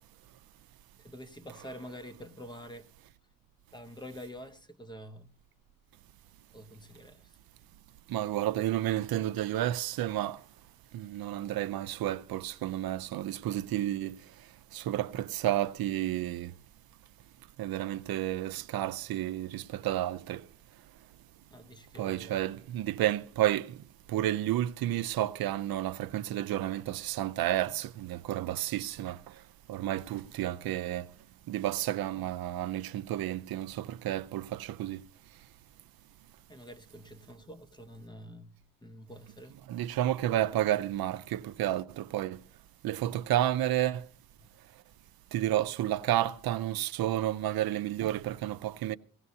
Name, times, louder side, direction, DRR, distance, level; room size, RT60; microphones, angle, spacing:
voice 1, 1.0-2.9 3.7-5.4 6.5-7.4 21.5-22.4 36.5-39.5, equal, 15° left, 0.6 m, -47 dB
voice 2, 8.1-10.4 10.9-14.1 14.7-16.5 17.6-20.4 22.0-23.7 24.1-29.2 29.7-31.0 31.5-35.0 39.7-42.4 42.8-44.0 45.3-49.0, right 13 dB, 80° right, 0.5 m, -31 dB
17.5 x 15.5 x 2.7 m
wide cardioid pair, 150°, 35 cm